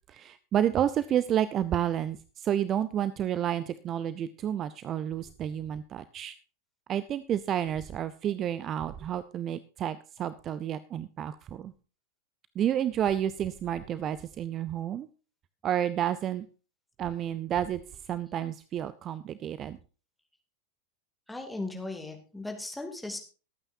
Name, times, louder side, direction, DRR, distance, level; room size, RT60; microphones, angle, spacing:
voice 1, 0.1-6.3 6.9-11.7 12.6-15.1 15.6-16.5 17.0-19.8, right 10 dB, 30° right, 16 dB, 0.5 m, -30 dB
voice 2, 21.3-23.2, left 2 dB, 5° left, 3 dB, 2.5 m, -37 dB
22.0 x 8.9 x 2.7 m, 0.36 s
figure-of-eight pair, 90°, 0 cm